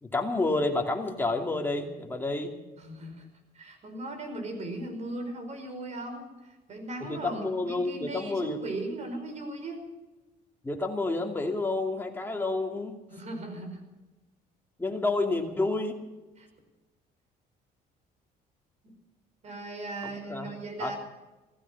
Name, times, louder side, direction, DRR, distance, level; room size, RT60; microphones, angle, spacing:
voice 1, 0.0-2.5 7.0-8.6 10.6-12.9 14.8-16.0 20.0-20.5 20.8-20.9, left 2 dB, 10° left, 2 dB, 2.6 m, -29 dB
voice 2, 2.8-3.3 3.5-9.8 13.1-13.8 16.4-16.5 19.4-21.0, right 2 dB, 40° right, 6 dB, 5.1 m, -38 dB
16.0 x 15.5 x 5.8 m, 1.1 s
cardioid pair, 110°, 17 cm